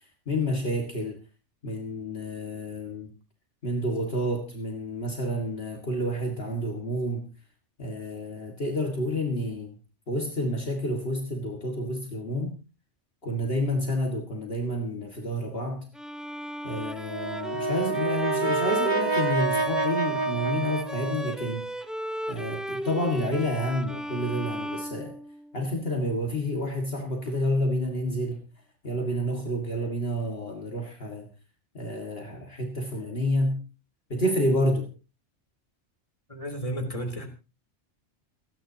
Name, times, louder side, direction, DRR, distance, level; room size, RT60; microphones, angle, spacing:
voice 1, 0.3-1.2 1.6-3.1 3.6-7.2 7.8-9.8 10.1-12.5 13.2-15.9 16.6-21.7 22.3-25.1 25.5-28.4 28.8-31.3 31.7-33.6 34.1-34.9, equal, 55° left, 2 dB, 2.3 m, -29 dB
Bowed string instrument, 15.9-25.7, equal, ahead, 0.6 m, -35 dB
Brass instrument, 17.1-21.5, right 4 dB, 25° right, 1.0 m, -28 dB
voice 2, 36.3-37.3, right 1 dB, 30° left, 3 dB, 3.3 m, -32 dB
29.5 x 10.0 x 2.9 m, 0.31 s
omnidirectional pair, 1.2 m